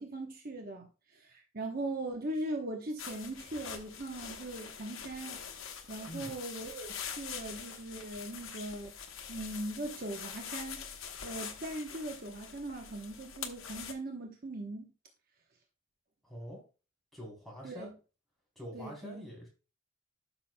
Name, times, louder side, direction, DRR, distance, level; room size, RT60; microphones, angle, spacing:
voice 1, 0.0-5.4 5.9-8.9 9.3-10.8 11.2-14.9 17.6-17.9 18.7-19.3, right 2 dB, 45° right, 1.0 m, -40 dB
sound 1, 3.0-13.9, left 7 dB, 85° left, 1.1 m, -44 dB
voice 2, 6.1-6.4 16.2-16.6 17.1-17.9 18.6-19.5, equal, ahead, 3.6 m, -45 dB
12.5 x 6.1 x 2.2 m
head